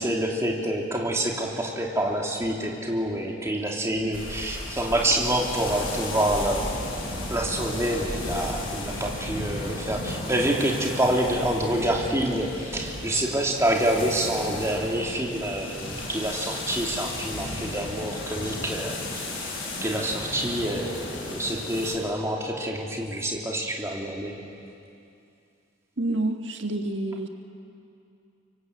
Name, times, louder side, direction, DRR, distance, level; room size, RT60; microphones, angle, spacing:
voice 1, 0.0-6.7 7.3-19.2 19.8-24.4, right 1 dB, 15° right, -1 dB, 2.8 m, -27 dB
sound 1, 4.1-21.9, left 1 dB, 85° left, 7.5 m, -34 dB
voice 2, 26.0-27.3, right 2 dB, 65° right, 5 dB, 1.6 m, -28 dB
25.5 x 24.0 x 8.1 m, 2.6 s
head